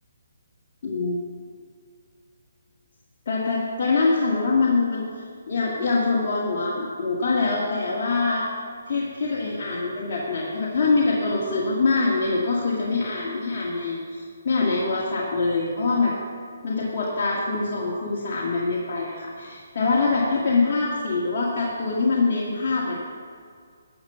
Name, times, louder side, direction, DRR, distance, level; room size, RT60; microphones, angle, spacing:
voice 1, 0.8-1.2 3.3-5.0 5.5-8.5 8.9-16.1 16.6-22.9, left 3 dB, 50° left, -5 dB, 1.9 m, -24 dB
12.5 x 6.9 x 6.9 m, 2.1 s
hypercardioid pair, 155°, 0 cm